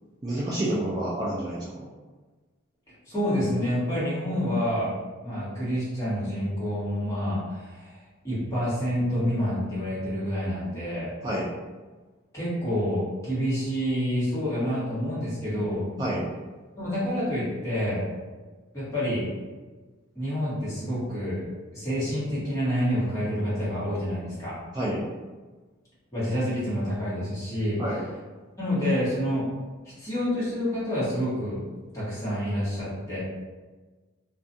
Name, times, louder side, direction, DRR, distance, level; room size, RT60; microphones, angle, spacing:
voice 1, 0.2-1.9 11.2-11.5 16.0-16.2 24.7-25.0 27.8-28.0, right 1 dB, 20° right, -8 dB, 0.4 m, -28 dB
voice 2, 3.1-4.9 5.2-11.1 12.3-15.9 16.8-18.1 18.7-19.3 20.1-21.4 21.7-24.6 26.1-27.8 28.6-29.5 30.0-31.6 31.8-33.2, equal, 15° left, -11 dB, 1.2 m, -28 dB
2.4 x 2.3 x 2.6 m, 1.3 s
head